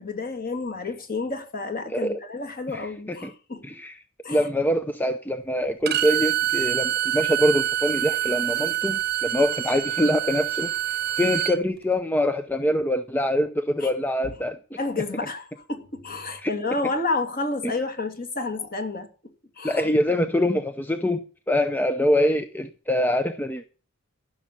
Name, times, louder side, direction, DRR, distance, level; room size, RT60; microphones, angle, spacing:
voice 1, 0.0-3.6 4.2-4.5 13.8-13.9 14.2-14.3 14.8-19.1 19.6-19.9, left 3 dB, 45° left, 2.5 m, -30 dB
voice 2, 2.7-3.3 3.6-4.0 4.3-10.7 11.2-14.6 16.4-16.5 17.6-17.7 19.6-23.7, left 1 dB, 10° left, 0.6 m, -24 dB
Bowed string instrument, 5.9-11.6, right 13 dB, 45° right, 0.9 m, -26 dB
14.5 x 6.3 x 7.3 m
head